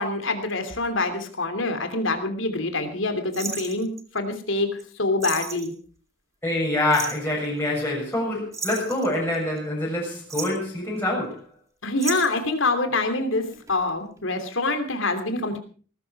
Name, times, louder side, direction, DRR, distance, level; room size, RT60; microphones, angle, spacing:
voice 1, 0.0-5.7 11.8-15.6, left 2 dB, 70° left, 7 dB, 3.0 m, -26 dB
sound 1, 3.3-4.2 4.8-4.9 5.2-5.7 6.9-7.3 8.5-9.6 10.1-10.7 12.0-12.5 13.5-13.9 14.2-14.3, right 4 dB, 15° right, 2.1 m, -33 dB
voice 2, 6.4-11.4, left 1 dB, 10° left, -4 dB, 6.8 m, -25 dB
19.5 x 13.0 x 4.7 m, 0.41 s
head